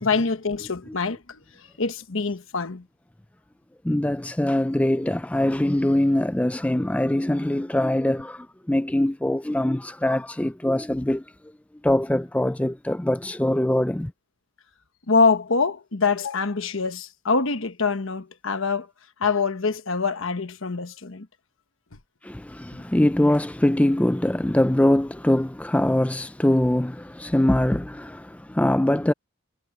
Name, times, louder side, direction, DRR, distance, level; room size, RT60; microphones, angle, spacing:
voice 1, 0.0-1.4 1.8-2.8 15.1-18.9 19.2-21.3 22.7-22.8, left 4 dB, 65° left, 1.2 m, -24 dB
voice 2, 3.8-11.2 11.8-14.1 22.2-29.1, left 1 dB, 5° left, 0.4 m, -23 dB
head